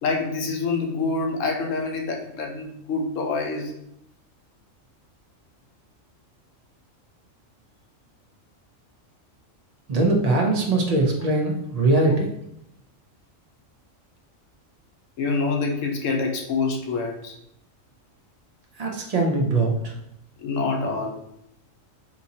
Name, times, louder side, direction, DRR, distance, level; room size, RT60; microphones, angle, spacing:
voice 1, 0.0-3.7 15.2-17.3 20.4-21.2, left 4 dB, 75° left, 2 dB, 1.0 m, -26 dB
voice 2, 9.9-12.3 18.8-19.9, right 2 dB, 65° right, 1 dB, 0.3 m, -21 dB
3.6 x 2.8 x 2.7 m, 0.77 s
omnidirectional pair, 1.4 m